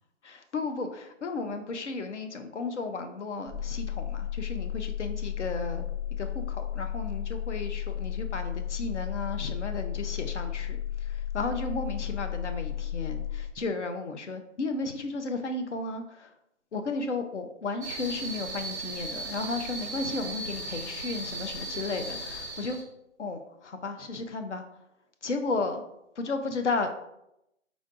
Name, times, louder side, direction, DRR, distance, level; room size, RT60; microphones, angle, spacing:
voice 1, 0.2-5.9 6.2-16.3 16.7-22.8 23.2-24.6 25.2-25.8 26.2-26.9, left 3 dB, 65° left, 7 dB, 0.8 m, -34 dB
sound 1, 3.5-13.5, left 11 dB, 25° left, 1.6 m, -33 dB
sound 2, 17.8-22.8, right 2 dB, 15° right, 0.5 m, -37 dB
5.1 x 3.8 x 2.5 m, 0.83 s
hypercardioid pair, 160°, 38 cm